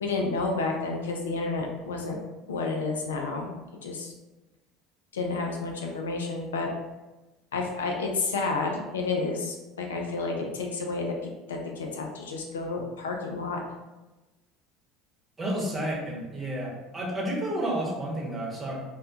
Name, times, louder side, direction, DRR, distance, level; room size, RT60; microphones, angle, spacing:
voice 1, 0.0-2.2 2.5-3.5 3.8-4.1 5.1-6.7 7.5-11.1 11.5-13.6, left 3 dB, 85° left, 1 dB, 0.3 m, -30 dB
voice 2, 15.4-18.8, right 1 dB, 20° right, -3 dB, 0.8 m, -31 dB
2.6 x 2.2 x 2.2 m, 1.1 s
hypercardioid pair, 75°, 0 cm